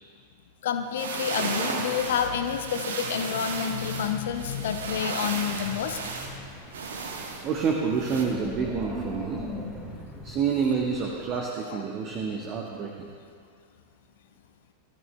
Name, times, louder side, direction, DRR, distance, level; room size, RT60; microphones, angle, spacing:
voice 1, 0.6-6.0 11.7-11.8, left 8 dB, 60° left, 7 dB, 0.6 m, -29 dB
sound 1, 0.8-8.2, right 4 dB, 65° right, 1.2 m, -34 dB
Wind, 5.5-11.4, left 1 dB, 5° right, 1.8 m, -40 dB
voice 2, 7.4-9.4 10.2-12.9, right 6 dB, 35° right, 0 dB, 1.1 m, -28 dB
19.5 x 13.5 x 2.2 m, 2.2 s
figure-of-eight pair, 90°, 0 cm